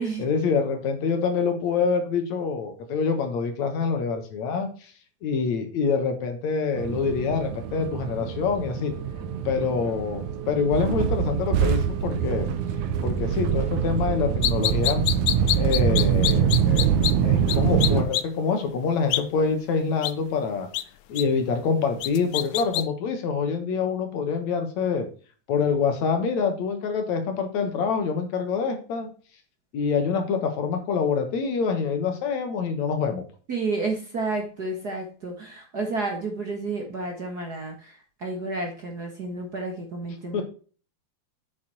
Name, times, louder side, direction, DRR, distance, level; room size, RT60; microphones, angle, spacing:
voice 1, 0.2-4.7 5.2-8.9 9.5-12.5 13.0-15.0 15.6-16.9 17.2-20.7 21.1-25.1 25.5-29.1 29.7-33.2 40.3-40.4, left 5 dB, 70° left, 6 dB, 2.7 m, -26 dB
sound 1, 6.8-18.0, right 8 dB, 80° right, 2.3 m, -24 dB
sound 2, 14.4-17.1 17.5-17.6 17.8-18.2 19.1-19.2 20.0-20.1 20.7-20.8 21.2-21.3 22.0-22.8, left 15 dB, 85° left, 2.1 m, -24 dB
voice 2, 33.5-40.4, right 3 dB, 40° right, 2 dB, 1.7 m, -31 dB
8.4 x 6.7 x 4.3 m, 0.39 s
omnidirectional pair, 3.4 m